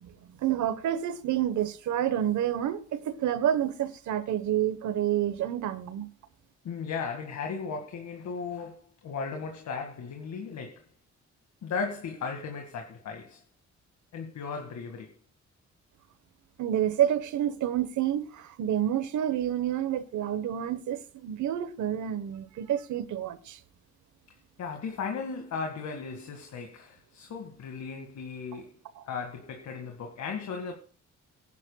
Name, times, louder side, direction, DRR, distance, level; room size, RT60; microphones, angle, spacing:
voice 1, 0.0-6.1 16.6-23.6 28.9-29.0, right 11 dB, 80° right, 1.2 m, -29 dB
voice 2, 6.6-10.8 11.6-13.4 14.1-15.1 24.6-28.7 29.1-30.7, left 5 dB, 70° left, 2.0 m, -36 dB
19.5 x 11.0 x 2.3 m
cardioid pair, 80°, 29 cm